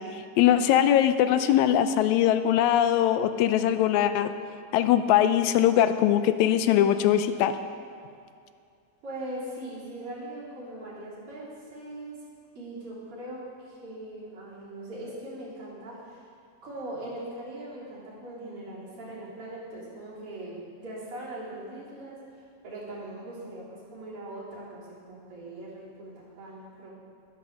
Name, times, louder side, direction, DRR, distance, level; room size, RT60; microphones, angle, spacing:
voice 1, 0.4-4.3 4.7-7.5, left 11 dB, 80° left, 10 dB, 1.9 m, -21 dB
voice 2, 9.0-12.1 12.6-16.3 16.6-26.9, right 1 dB, 50° right, -8 dB, 4.2 m, -40 dB
10.0 x 9.2 x 7.0 m, 2.3 s
omnidirectional pair, 3.4 m